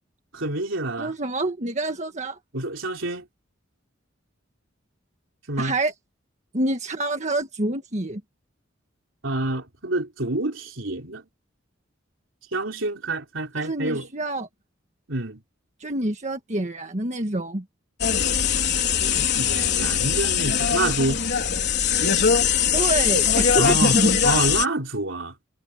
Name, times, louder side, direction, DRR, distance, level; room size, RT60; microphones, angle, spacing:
voice 1, 0.3-1.1 2.5-3.3 5.5-5.7 9.2-11.2 12.5-14.1 15.1-15.4 19.0-21.2 23.6-25.3, right 2 dB, 75° right, 3.8 m, -27 dB
voice 2, 1.0-2.4 5.6-5.9 6.5-8.2 13.5-14.5 15.8-17.6 22.7-24.2, right 1 dB, 35° right, 1.6 m, -26 dB
sound 1, 18.0-24.7, left 8 dB, 60° left, 4.0 m, -21 dB
head